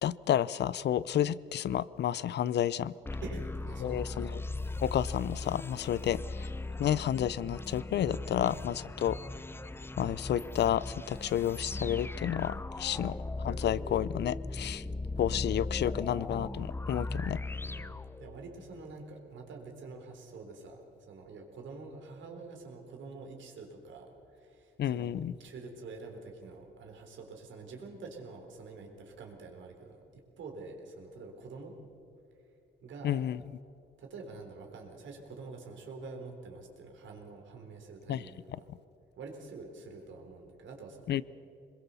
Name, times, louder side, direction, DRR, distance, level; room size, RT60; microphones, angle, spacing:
voice 1, 0.0-2.9 3.8-4.3 4.8-6.2 6.8-9.2 10.0-13.1 13.4-14.8 15.2-17.4 24.8-25.3 33.0-33.4 38.1-38.2 41.1-41.2, left 10 dB, 60° left, 20 dB, 0.6 m, -30 dB
sound 1, 3.0-18.7, left 2 dB, 10° left, 0.6 m, -38 dB
voice 2, 3.2-4.4 6.0-6.3 8.3-8.8 12.9-13.3 15.5-16.2 17.7-25.1 25.4-31.8 32.8-33.3 34.0-38.7 39.2-41.2, right 3 dB, 70° right, 3 dB, 3.8 m, -47 dB
22.5 x 21.0 x 7.0 m, 2.7 s
cardioid pair, 90°, 20 cm